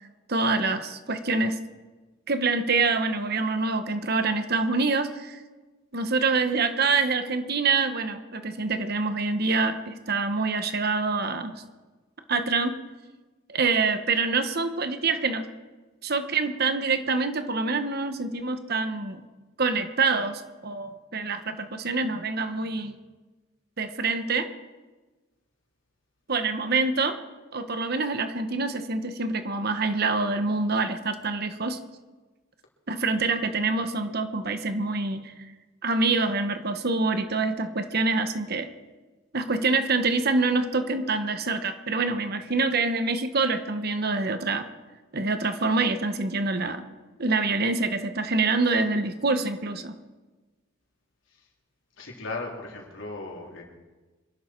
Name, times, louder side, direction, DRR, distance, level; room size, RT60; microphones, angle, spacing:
voice 1, 0.3-1.6 2.3-5.4 5.9-11.5 12.3-12.7 13.5-15.5 16.0-19.2 19.6-23.0 23.8-24.5 26.3-27.2 27.5-31.8 32.9-35.3 35.8-38.7 39.3-44.6 45.1-46.8 47.2-49.9, right 3 dB, 50° right, 8 dB, 1.2 m, -26 dB
voice 2, 52.0-53.6, left 3 dB, 75° left, -1 dB, 3.8 m, -37 dB
25.5 x 12.0 x 4.6 m, 1.2 s
head